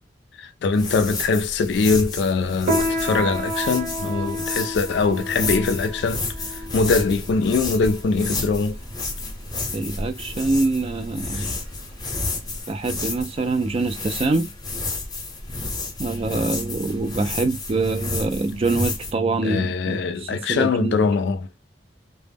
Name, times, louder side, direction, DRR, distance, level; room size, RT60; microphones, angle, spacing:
voice 1, 0.4-6.2 6.7-8.8 11.4-11.5 19.4-21.5, left 4 dB, 70° left, 0.3 m, -22 dB
sound 1, 0.7-19.1, left 3 dB, 20° left, 0.7 m, -31 dB
Piano, 2.6-12.6, right 1 dB, 50° right, 0.8 m, -31 dB
voice 2, 9.7-11.5 12.7-14.5 16.0-21.0, right 3 dB, 35° right, 0.3 m, -25 dB
2.1 x 2.0 x 3.3 m
head